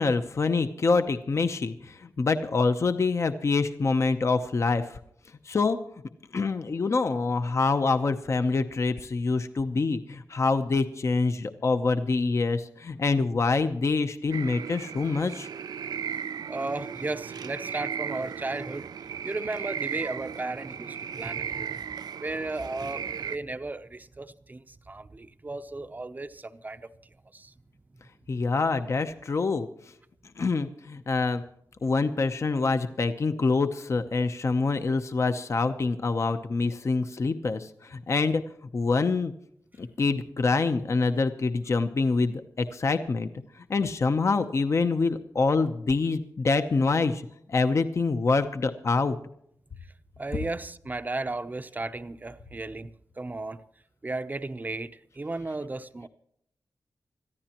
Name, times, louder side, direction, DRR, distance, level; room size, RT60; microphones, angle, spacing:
voice 1, 0.0-5.0 5.5-5.8 6.3-15.5 28.3-29.7 30.4-31.4 31.8-38.4 38.7-39.3 39.8-43.3 43.7-47.2 47.5-49.1, left 4 dB, 45° left, 0.8 m, -26 dB
sound 1, 14.3-23.4, right 7 dB, 90° right, 0.5 m, -36 dB
voice 2, 16.5-21.8 22.2-26.9 27.3-27.5 50.2-53.6 54.0-56.1, right 2 dB, 25° right, 0.7 m, -35 dB
26.0 x 14.5 x 3.0 m
wide cardioid pair, 120°, 7 cm